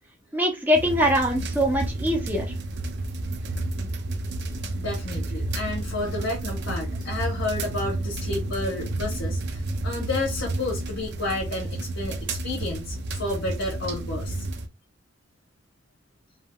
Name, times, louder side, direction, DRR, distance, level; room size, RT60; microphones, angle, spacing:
voice 1, 0.3-2.6, equal, 10° right, 0.5 m, -23 dB
sound 1, 0.7-14.7, right 2 dB, 60° right, 0.5 m, -31 dB
voice 2, 4.7-14.4, left 2 dB, 65° left, 0.9 m, -31 dB
3.4 x 2.2 x 2.2 m
head